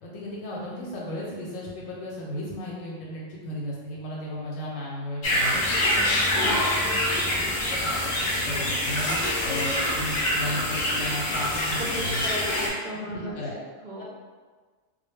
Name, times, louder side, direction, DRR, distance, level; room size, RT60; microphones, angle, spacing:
voice 1, 0.0-5.6 7.2-12.2 13.1-13.6 14.0-14.1, left 1 dB, 85° left, -5 dB, 1.0 m, -35 dB
sound 1, 5.2-12.7, left 1 dB, 55° left, 0.5 m, -25 dB
voice 2, 5.7-7.0 11.8-14.0, equal, 55° right, -6 dB, 0.5 m, -36 dB
2.2 x 2.1 x 3.2 m, 1.4 s
omnidirectional pair, 1.3 m